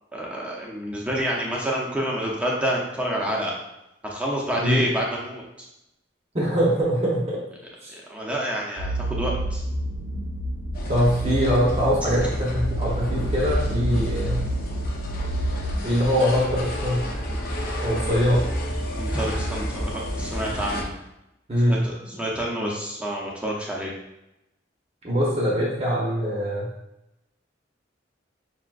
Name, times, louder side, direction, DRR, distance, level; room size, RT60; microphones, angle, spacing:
voice 1, 0.1-3.5 4.0-5.7 7.9-9.6 19.0-20.9 21.7-23.9, equal, 5° right, -3 dB, 0.8 m, -28 dB
voice 2, 6.3-7.4 7.8-7.9 10.9-14.4 15.8-17.1 17.8-18.4 21.5-21.8 25.0-26.7, equal, 35° right, -5 dB, 1.0 m, -23 dB
sound 1, 8.8-15.8, right 1 dB, 90° right, 0.9 m, -29 dB
sound 2, 10.7-20.8, equal, 50° left, 0.6 m, -31 dB
5.9 x 2.8 x 2.5 m, 0.90 s
head